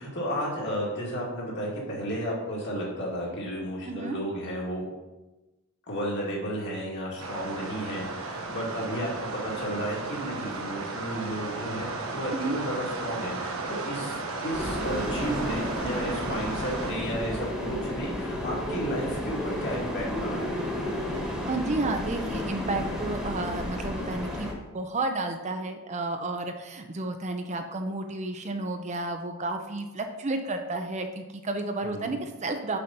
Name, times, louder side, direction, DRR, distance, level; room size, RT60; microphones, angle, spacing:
voice 1, 0.0-4.8 5.9-20.6 31.8-32.2, equal, 55° left, -4 dB, 2.3 m, -33 dB
voice 2, 3.9-4.2 12.3-12.6 21.4-24.5 24.7-32.8, right 2 dB, 30° right, 6 dB, 0.6 m, -31 dB
sound 1, 7.2-16.9, right 3 dB, 70° right, 1.1 m, -35 dB
sound 2, 14.5-24.5, left 1 dB, ahead, 1.5 m, -32 dB
6.7 x 5.1 x 5.8 m, 1.1 s
head